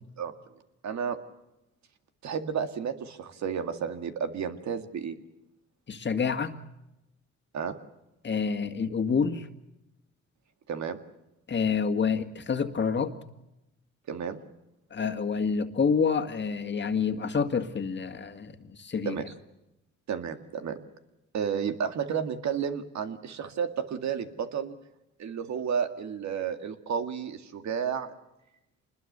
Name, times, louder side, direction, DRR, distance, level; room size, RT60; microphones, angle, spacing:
voice 1, 0.8-1.2 2.2-5.2 7.5-7.8 10.7-11.0 14.1-14.4 19.1-19.2 20.1-20.8 21.3-24.8 25.2-28.1, right 7 dB, 65° right, 7 dB, 2.2 m, -32 dB
voice 2, 5.9-6.6 8.2-9.5 11.5-13.1 14.9-19.1, left 5 dB, 35° left, 8 dB, 1.9 m, -28 dB
26.0 x 21.0 x 6.8 m, 0.92 s
cardioid pair, 90°, 30 cm